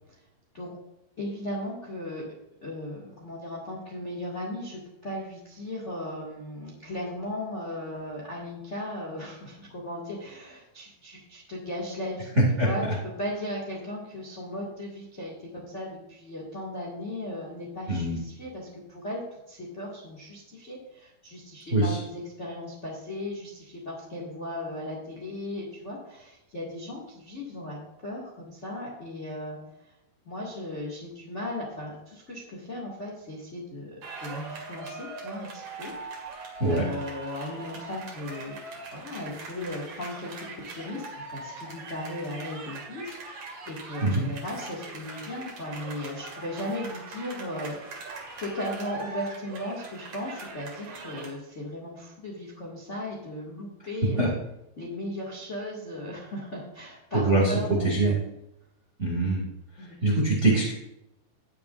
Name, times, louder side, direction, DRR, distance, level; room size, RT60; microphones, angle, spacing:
voice 1, 1.2-2.2 2.6-12.3 12.6-12.8 13.2-29.9 30.2-35.9 36.3-38.6 38.9-47.8 48.4-54.3 54.8-58.1 59.8-59.9, left 1 dB, 35° left, -3 dB, 1.2 m, -37 dB
voice 2, 12.4-12.7 17.9-18.2 21.7-22.0 36.6-36.9 44.0-44.1 54.2-54.3 57.1-57.5 57.8-58.2 59.0-59.5 59.8-60.7, right 2 dB, 25° right, -3 dB, 1.7 m, -23 dB
sound 1, 34.0-51.3, right 3 dB, 50° right, 3.2 m, -41 dB
19.0 x 7.0 x 2.6 m, 0.88 s
omnidirectional pair, 5.2 m